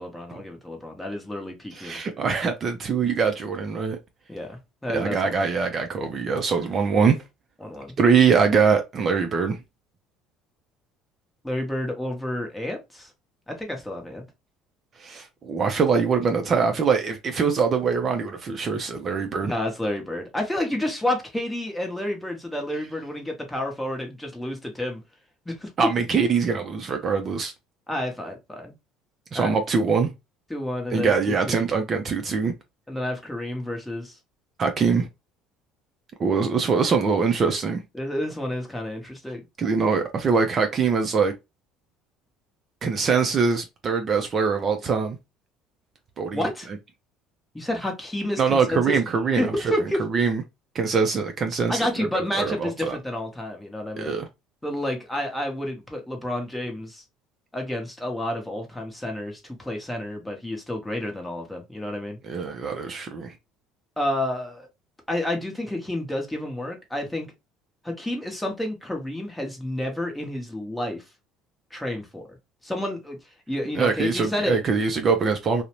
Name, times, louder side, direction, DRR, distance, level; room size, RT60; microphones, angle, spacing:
voice 1, 0.0-2.0 4.3-5.4 7.6-7.9 11.4-13.1 13.5-14.3 19.4-25.0 25.5-25.7 27.9-28.7 29.3-29.6 30.5-31.6 32.9-34.1 37.9-39.4 46.3-46.7 47.5-49.0 49.4-50.0 51.7-54.1 54.6-57.0 57.5-62.2 64.0-64.7 65.1-67.3 67.8-71.0 71.7-72.2 72.6-73.2 73.5-74.6, left 1 dB, 5° left, 0.8 m, -30 dB
voice 2, 1.7-4.0 4.9-7.2 8.0-9.6 15.0-19.5 25.8-27.5 29.3-30.1 30.9-32.5 34.6-35.1 36.2-37.8 39.6-41.3 42.8-45.2 46.2-46.5 48.4-49.7 50.0-50.4 50.7-53.0 54.0-54.3 62.2-63.4 73.8-75.6, right 5 dB, 35° right, 0.4 m, -23 dB
2.6 x 2.0 x 2.9 m
cardioid pair, 125°, 0 cm